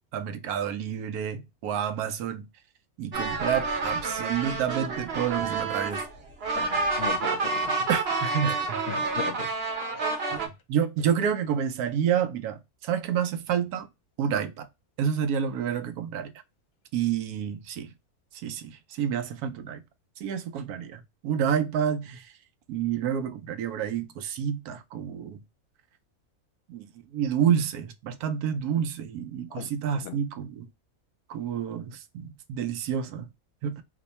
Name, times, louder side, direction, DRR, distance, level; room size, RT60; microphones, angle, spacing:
voice 1, 0.1-2.5 3.0-6.0 7.9-8.8 10.3-13.9 14.2-14.7 15.0-16.3 16.9-17.9 18.4-19.8 20.2-22.3 22.7-25.4 26.7-26.9 27.1-30.6 31.3-33.3 33.6-33.8, right 8 dB, 85° right, 1.1 m, -29 dB
sound 1, 3.1-10.5, right 3 dB, 50° right, 0.9 m, -29 dB
voice 2, 6.6-7.9 8.4-8.6 8.9-9.5 9.8-10.2 29.5-29.7 29.9-30.2, left 9 dB, 60° left, 0.9 m, -38 dB
2.9 x 2.2 x 4.0 m
omnidirectional pair, 1.6 m